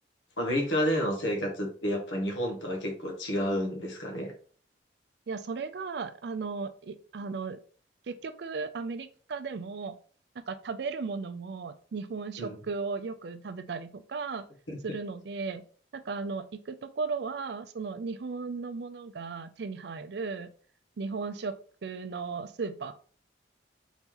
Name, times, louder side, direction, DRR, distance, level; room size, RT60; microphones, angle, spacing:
voice 1, 0.4-4.3 12.4-12.6 14.7-14.8, equal, 80° left, 2 dB, 1.1 m, -30 dB
voice 2, 5.3-7.6 8.0-10.0 10.5-14.4 14.8-15.6 15.9-20.5 21.0-22.9, right 4 dB, 60° right, 10 dB, 0.4 m, -36 dB
4.0 x 3.0 x 3.7 m, 0.43 s
head